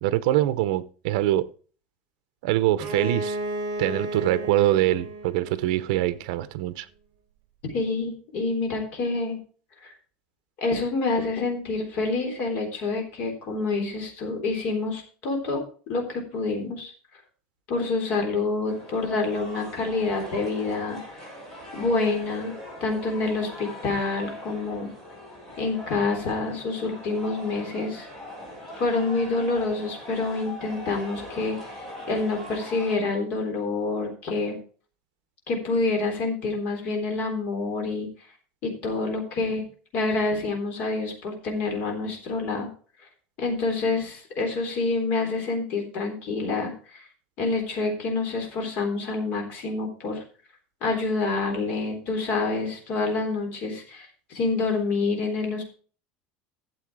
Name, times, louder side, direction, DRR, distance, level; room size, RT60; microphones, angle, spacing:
voice 1, 0.0-1.5 2.4-3.4 3.8-6.9, right 14 dB, 70° right, 0.8 m, -24 dB
Bowed string instrument, 2.7-6.4, right 1 dB, 40° right, 3.3 m, -34 dB
voice 2, 7.7-9.4 9.8-9.9 10.6-15.6 15.9-16.9 17.7-21.2 21.7-22.5 22.8-24.9 25.6-28.1 28.8-31.6 32.1-34.6 35.5-38.1 38.6-39.6 39.9-42.7 43.4-47.0 47.4-50.2 50.8-55.6, left 3 dB, 40° left, 3.7 m, -27 dB
sound 1, 18.7-33.0, equal, 5° left, 5.0 m, -41 dB
12.5 x 7.5 x 4.8 m
cardioid pair, 175°, 4 cm